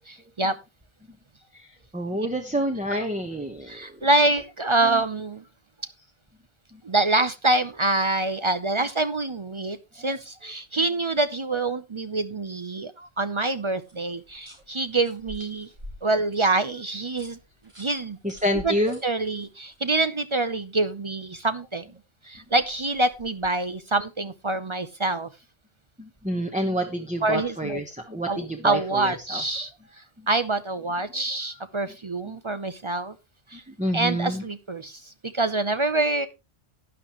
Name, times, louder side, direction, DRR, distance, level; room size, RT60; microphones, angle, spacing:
voice 1, 0.1-0.6 3.7-5.4 6.8-15.7 16.0-17.4 17.8-18.2 18.6-18.7 19.0-21.9 22.2-25.3 27.2-27.8 28.3-29.7 30.0-33.2 33.5-33.6 33.9-36.3, right 2 dB, 35° right, 12 dB, 0.6 m, -26 dB
voice 2, 1.5-4.1 4.8-5.0 6.7-6.8 18.2-19.0 26.0-29.4 30.2-30.3 33.5-34.4, equal, 10° right, 3 dB, 1.0 m, -28 dB
sound 1, 13.8-19.8 22.3-23.8, left 1 dB, 75° right, 5.1 m, -48 dB
12.0 x 10.0 x 3.0 m, 0.26 s
omnidirectional pair, 1.1 m